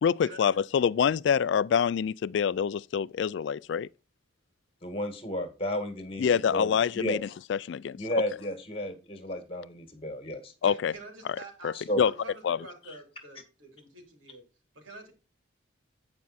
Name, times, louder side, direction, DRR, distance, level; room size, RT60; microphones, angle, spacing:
voice 1, 0.0-3.9 6.2-7.2 7.5-8.0 10.6-10.9 11.6-12.1 12.4-12.6, left 7 dB, 65° left, 0.3 m, -26 dB
voice 2, 4.8-7.2 8.0-10.5 11.7-12.0, left 1 dB, 30° left, 1.9 m, -33 dB
voice 3, 10.6-14.4 14.7-15.1, right 2 dB, 85° right, 3.7 m, -47 dB
9.5 x 5.3 x 4.2 m
head